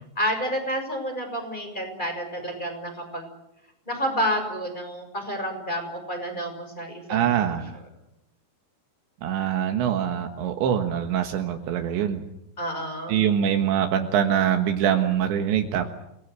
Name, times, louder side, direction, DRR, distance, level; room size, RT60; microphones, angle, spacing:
voice 1, 0.2-3.2 3.9-7.2 12.6-13.2, equal, 10° left, 4 dB, 6.2 m, -29 dB
voice 2, 7.1-7.8 9.2-12.3 13.1-15.9, right 9 dB, 80° right, 5 dB, 3.8 m, -24 dB
29.5 x 20.0 x 8.2 m, 0.84 s
omnidirectional pair, 5.1 m